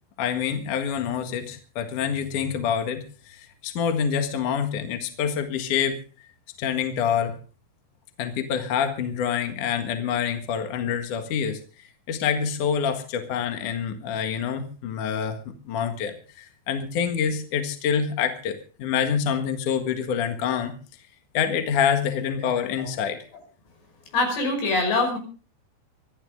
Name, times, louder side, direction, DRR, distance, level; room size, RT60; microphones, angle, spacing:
voice 1, 0.2-6.0 6.6-7.3 8.2-11.6 12.1-15.4 15.7-20.7 21.3-23.2, left 7 dB, 55° left, 6 dB, 2.9 m, -26 dB
voice 2, 24.1-25.2, left 2 dB, 90° left, 4 dB, 7.7 m, -23 dB
26.0 x 12.0 x 3.7 m, 0.37 s
omnidirectional pair, 4.7 m